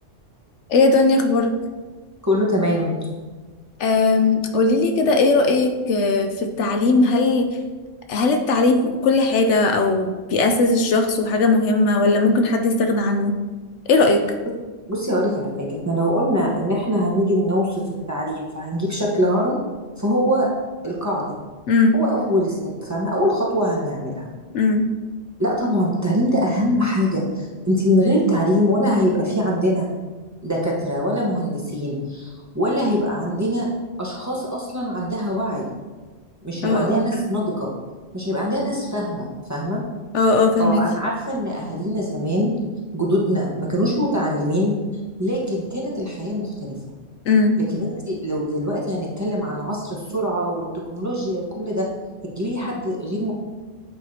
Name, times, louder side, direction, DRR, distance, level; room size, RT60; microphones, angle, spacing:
voice 1, 0.7-1.5 3.8-7.5 8.1-13.3 13.9-14.2 21.7-22.0 24.5-24.9 36.6-37.1 40.1-40.8 47.3-47.6, left 3 dB, 70° left, 5 dB, 0.9 m, -18 dB
voice 2, 2.3-2.9 14.9-17.8 18.1-19.6 20.0-20.5 20.8-21.4 21.9-24.3 25.4-29.9 30.4-33.7 34.0-35.7 36.4-37.7 38.1-39.8 40.6-42.5 42.9-44.7 45.2-46.7 47.7-51.9 52.2-53.3, equal, 15° right, -4 dB, 1.0 m, -23 dB
8.6 x 4.7 x 2.8 m, 1.3 s
omnidirectional pair, 1.3 m